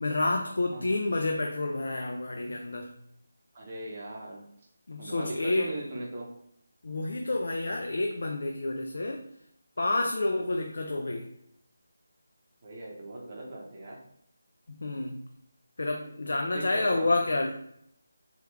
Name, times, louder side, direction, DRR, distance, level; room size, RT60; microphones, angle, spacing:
voice 1, 0.0-2.9 4.9-5.7 6.8-9.2 9.8-11.3 14.7-15.3 15.8-17.5, left 2 dB, 60° left, 3 dB, 0.4 m, -29 dB
voice 2, 3.5-4.5 5.0-6.3 12.6-14.0 16.5-17.1, right 1 dB, 25° right, -3 dB, 0.7 m, -39 dB
3.2 x 2.3 x 3.3 m, 0.73 s
figure-of-eight pair, 175°, 0 cm